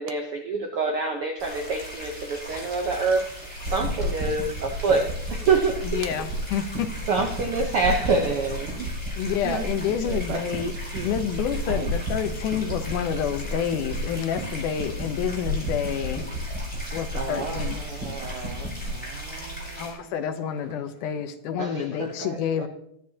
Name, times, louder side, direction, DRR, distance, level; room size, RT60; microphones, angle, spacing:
voice 1, 0.0-5.9 7.1-8.7 17.1-18.7 21.5-22.7, right 4 dB, 65° right, 2 dB, 1.4 m, -27 dB
sound 1, 1.4-19.9, right 1 dB, 5° left, 4.3 m, -39 dB
sound 2, 3.6-18.9, equal, 35° right, 6.0 m, -33 dB
voice 2, 5.8-6.9 9.2-10.7 11.0-16.3 16.9-17.8 19.8-22.7, left 8 dB, 80° left, 9 dB, 2.3 m, -28 dB
voice 3, 9.3-11.1 11.7-11.9 12.3-12.4 18.7-21.1, right 8 dB, 85° right, 10 dB, 2.4 m, -39 dB
22.0 x 9.8 x 2.8 m, 0.73 s
omnidirectional pair, 3.7 m